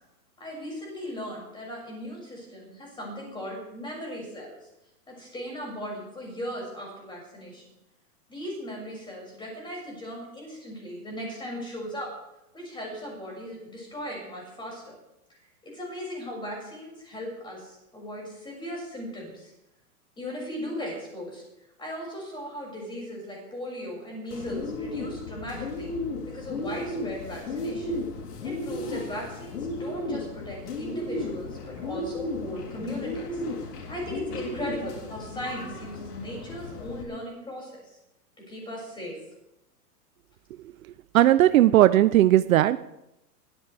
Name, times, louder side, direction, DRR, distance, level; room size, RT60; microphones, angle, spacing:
voice 1, 0.4-4.5 5.1-7.6 8.3-12.1 12.5-15.0 15.6-19.5 20.2-21.4 21.8-25.9 26.3-28.0 28.4-33.4 33.9-37.8 38.4-39.2, equal, 10° left, -2 dB, 6.4 m, -37 dB
Bird, 24.3-37.0, left 2 dB, 80° left, 3.6 m, -34 dB
voice 2, 41.1-42.8, right 13 dB, 60° right, 13 dB, 0.7 m, -17 dB
20.5 x 14.5 x 3.5 m, 0.87 s
hypercardioid pair, 150°, 46 cm